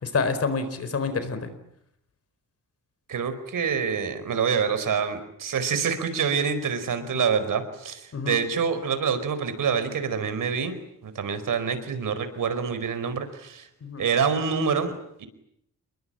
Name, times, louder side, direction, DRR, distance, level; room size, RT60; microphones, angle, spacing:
voice 1, 0.0-1.5 7.1-7.2 8.1-8.4 13.8-14.0, left 4 dB, 50° left, 11 dB, 4.4 m, -28 dB
voice 2, 3.1-10.8 11.0-13.7 14.0-15.3, right 6 dB, 85° right, 11 dB, 4.7 m, -26 dB
28.5 x 22.5 x 9.0 m, 0.75 s
wide cardioid pair, 160°, 31 cm